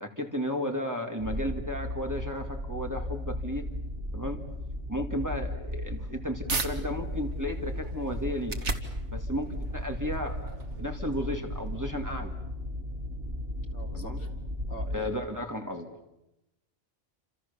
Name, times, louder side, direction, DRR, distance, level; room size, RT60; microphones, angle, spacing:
voice 1, 0.0-3.7 4.1-4.4 4.9-8.6 9.1-12.3 13.9-14.2 14.9-16.0, left 1 dB, 15° right, 3 dB, 2.4 m, -34 dB
sound 1, 1.2-15.0, left 1 dB, 50° right, 4.9 m, -36 dB
sound 2, 5.7-6.7 7.2-12.5, right 3 dB, 65° right, 2.1 m, -38 dB
voice 2, 13.7-14.3 14.7-15.3, equal, 70° left, 0 dB, 4.2 m, -44 dB
29.5 x 26.5 x 7.1 m, 0.90 s
omnidirectional pair, 1.3 m